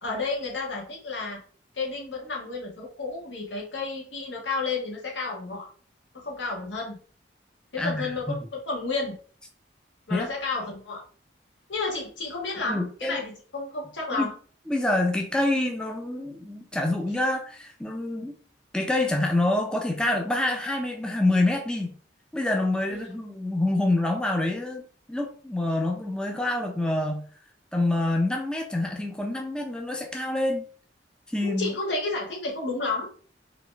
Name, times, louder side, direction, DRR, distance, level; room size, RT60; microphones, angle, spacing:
voice 1, 0.0-1.4 1.7-5.7 6.1-7.0 7.7-9.2 10.1-11.0 11.7-14.3 22.9-23.1 31.4-33.1, left 3 dB, 90° left, -1 dB, 1.6 m, -31 dB
voice 2, 7.8-8.4 10.1-10.3 12.7-13.2 14.1-14.3 14.7-18.3 18.7-21.9 22.3-24.8 25.1-27.2 27.7-30.6 31.3-31.7, left 2 dB, 5° left, 2 dB, 0.5 m, -26 dB
4.0 x 2.9 x 3.3 m, 0.42 s
head